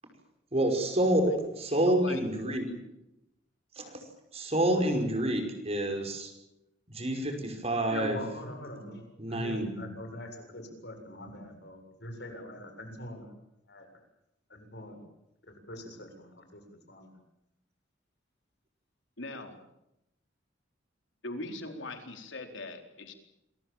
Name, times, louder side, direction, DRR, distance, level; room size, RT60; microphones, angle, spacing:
voice 1, 0.5-2.7 3.8-3.9 4.3-6.3 6.9-8.2 9.2-10.0, right 1 dB, 35° right, 4 dB, 5.4 m, -28 dB
voice 2, 1.9-2.8 19.2-19.6 21.2-23.1, left 2 dB, 85° left, 5 dB, 4.3 m, -41 dB
voice 3, 7.9-9.0 9.3-13.3 13.7-13.9 14.5-15.1 15.5-16.6 16.9-17.1, left 1 dB, 60° left, 5 dB, 7.5 m, -43 dB
27.5 x 23.5 x 7.4 m, 0.87 s
head